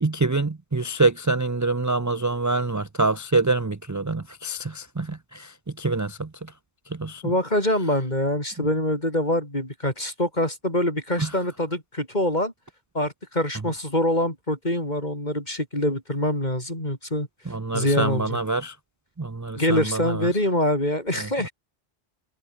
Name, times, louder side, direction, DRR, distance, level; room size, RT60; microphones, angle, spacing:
voice 1, 0.0-6.5 6.9-7.3 8.6-8.7 11.2-11.3 17.5-18.8 19.2-20.3 21.1-21.5, right 3 dB, 20° right, 0.5 m, -26 dB
voice 2, 7.2-12.5 12.9-17.3 17.7-18.4 19.6-21.5, left 1 dB, 35° left, 7.7 m, -25 dB
omnidirectional pair, 1.2 m